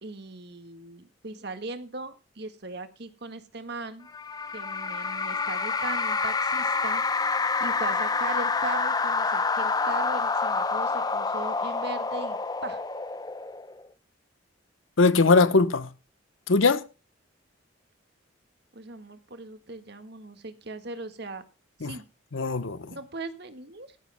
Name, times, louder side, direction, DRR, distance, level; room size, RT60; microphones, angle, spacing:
voice 1, 0.0-4.1 4.5-7.0 7.6-12.8 18.7-21.4 21.8-22.0 22.9-24.0, right 3 dB, 55° right, 1.7 m, -39 dB
sound 1, 4.1-13.8, left 4 dB, 20° left, 0.6 m, -28 dB
voice 2, 15.0-15.9 16.5-16.9 21.8-21.9 22.3-22.9, left 3 dB, 85° left, 1.0 m, -21 dB
17.5 x 14.0 x 2.2 m
head